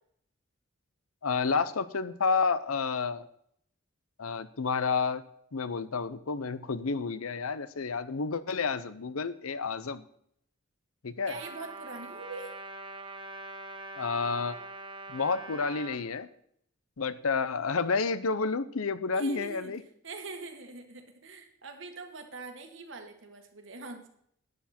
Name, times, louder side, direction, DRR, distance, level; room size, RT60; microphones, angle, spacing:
voice 1, 1.2-3.3 4.2-5.2 5.5-10.0 11.0-11.4 14.0-14.6 15.1-16.3 17.0-19.8, left 4 dB, 90° left, 14 dB, 0.7 m, -30 dB
Trumpet, 11.3-16.0, right 2 dB, 25° right, 1.1 m, -43 dB
voice 2, 11.3-12.5 19.1-19.7 20.0-24.1, right 3 dB, 65° right, 5 dB, 1.7 m, -43 dB
12.0 x 9.7 x 4.4 m, 0.68 s
head